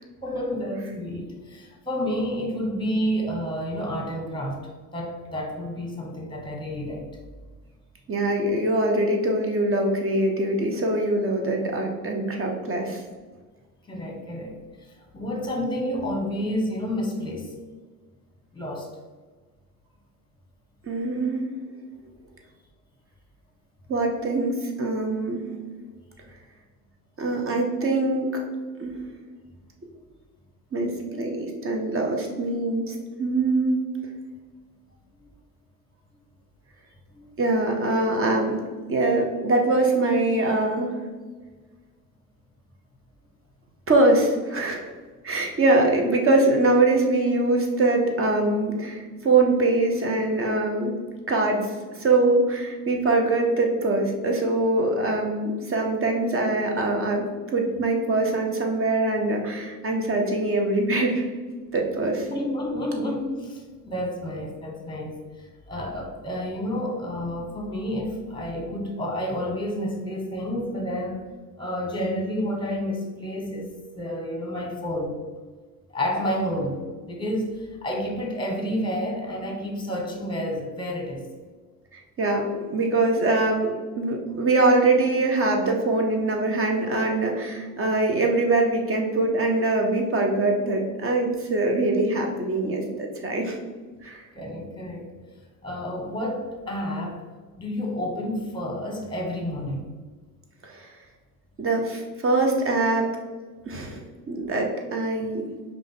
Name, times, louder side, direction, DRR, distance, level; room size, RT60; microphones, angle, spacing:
voice 1, 0.2-7.1 13.9-14.6 15.1-17.5 18.5-18.9 35.2-35.3 37.1-37.4 62.3-71.2 71.6-75.2 75.9-81.3 94.3-95.1 95.6-97.2 97.6-99.9, equal, 10° left, 1 dB, 1.2 m, -30 dB
voice 2, 8.1-13.0 20.9-21.5 23.9-25.4 27.2-28.3 28.8-28.9 30.7-33.8 37.4-38.6 38.9-41.1 43.9-44.9 45.2-51.0 51.3-51.7 52.0-57.3 57.5-61.3 61.7-62.3 82.2-93.6 94.0-94.2 100.6-100.9 101.6-103.1 103.7-105.5, right 2 dB, 30° right, 2 dB, 1.0 m, -23 dB
5.0 x 2.5 x 3.9 m, 1.4 s
hypercardioid pair, 60°, 45 cm